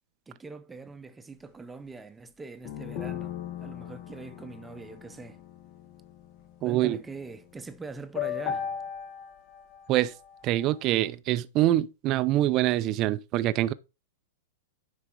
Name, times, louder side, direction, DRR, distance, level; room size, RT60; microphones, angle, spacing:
voice 1, 0.3-5.4 6.6-8.7, right 4 dB, 10° right, 1.0 m, -43 dB
sound 1, 2.7-7.5 8.2-10.8, left 9 dB, 45° left, 1.8 m, -37 dB
voice 2, 6.6-7.0 9.9-10.1 10.4-13.7, right 14 dB, 40° right, 0.7 m, -25 dB
9.6 x 5.1 x 4.9 m
hypercardioid pair, 125°, 0 cm